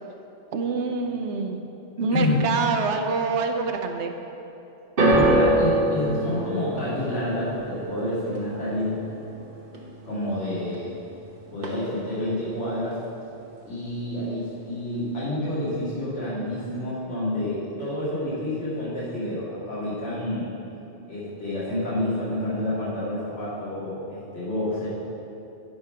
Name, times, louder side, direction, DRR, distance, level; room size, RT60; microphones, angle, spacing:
voice 1, 0.5-1.6 2.0-4.1, right 4 dB, 75° right, 5 dB, 1.0 m, -26 dB
voice 2, 2.1-2.4 5.0-9.0 10.0-10.9 11.5-13.0 13.6-20.5 21.0-24.9, left 1 dB, 80° left, -10 dB, 2.6 m, -28 dB
sound 1, 5.0-11.3 11.5-12.2 12.9-13.0, right 1 dB, 55° right, 1.2 m, -26 dB
9.9 x 5.7 x 5.0 m, 3.0 s
omnidirectional pair, 1.2 m